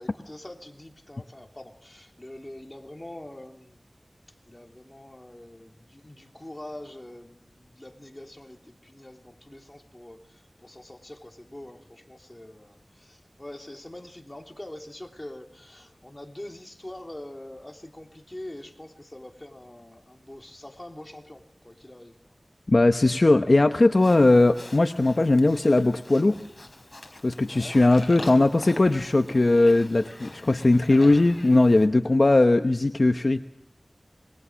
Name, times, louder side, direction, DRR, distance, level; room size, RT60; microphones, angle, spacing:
voice 1, 0.0-3.8 4.4-22.4 27.4-27.8, left 1 dB, 25° left, 2 dB, 3.2 m, -44 dB
voice 2, 22.7-26.4 27.2-33.4, left 2 dB, 60° left, 7 dB, 1.0 m, -19 dB
Livestock farm animals working animals, 24.0-31.9, left 1 dB, 45° left, 4.9 m, -43 dB
27.0 x 21.5 x 6.3 m, 0.76 s
wide cardioid pair, 55°, 0 cm